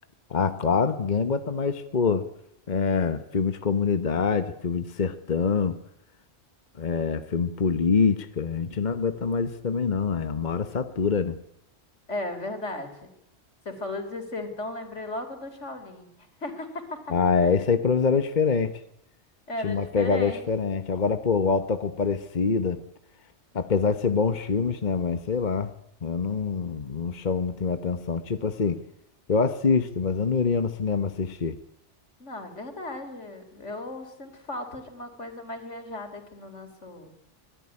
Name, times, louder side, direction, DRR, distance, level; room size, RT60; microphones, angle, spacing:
voice 1, 0.3-2.3 2.7-5.8 6.8-11.4 17.1-18.8 19.6-22.8 23.5-25.7 26.0-28.8 29.3-31.6, left 5 dB, 40° left, 9 dB, 1.3 m, -25 dB
voice 2, 12.1-13.1 13.7-16.1 16.4-17.0 19.5-20.5 32.2-37.1, left 2 dB, 80° left, 7 dB, 4.1 m, -36 dB
25.5 x 18.5 x 9.9 m, 0.77 s
omnidirectional pair, 1.2 m